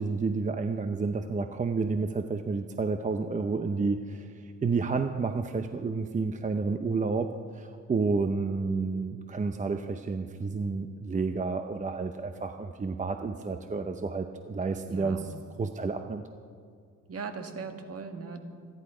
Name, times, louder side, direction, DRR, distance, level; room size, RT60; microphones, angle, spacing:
voice 1, 0.0-7.3 7.5-15.3 15.6-16.2, right 4 dB, 25° right, 7 dB, 0.6 m, -30 dB
voice 2, 14.9-15.4 17.1-18.4, right 5 dB, 50° right, 6 dB, 1.8 m, -39 dB
26.5 x 11.0 x 5.0 m, 2.2 s
cardioid pair, 115°, 32 cm